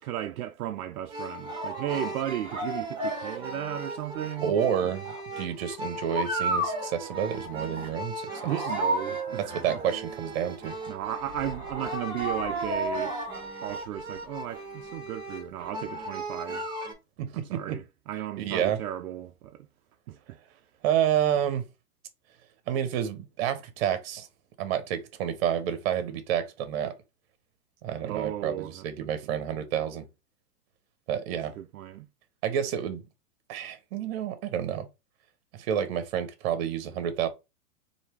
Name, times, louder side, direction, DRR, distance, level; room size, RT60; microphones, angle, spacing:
voice 1, 0.0-4.6 4.8-4.9 8.4-9.8 10.9-13.2 13.6-16.6 17.3-19.7 20.1-20.4 28.0-28.9 31.6-32.1, right 12 dB, 70° right, 0.5 m, -35 dB
sound 1, 1.1-16.9, right 1 dB, 10° right, 1.3 m, -34 dB
voice 2, 4.4-8.3 9.4-10.8 17.2-17.8 18.4-18.8 20.8-21.6 22.7-24.3 24.6-27.0 27.8-30.1 31.1-31.5 32.4-33.0 33.5-34.9 35.5-37.3, right 9 dB, 40° right, 1.0 m, -29 dB
3.2 x 2.8 x 4.4 m
hypercardioid pair, 140°, 45 cm